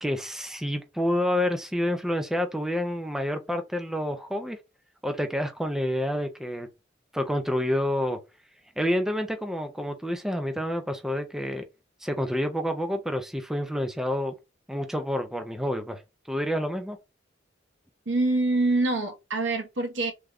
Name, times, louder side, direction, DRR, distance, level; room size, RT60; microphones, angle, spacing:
voice 1, 0.0-4.6 5.0-6.7 7.1-8.2 8.8-11.6 12.0-14.3 14.7-16.0 16.3-17.0, left 1 dB, 5° right, 0.3 m, -28 dB
voice 2, 18.1-20.1, right 2 dB, 75° right, 0.9 m, -25 dB
3.6 x 2.2 x 3.3 m
head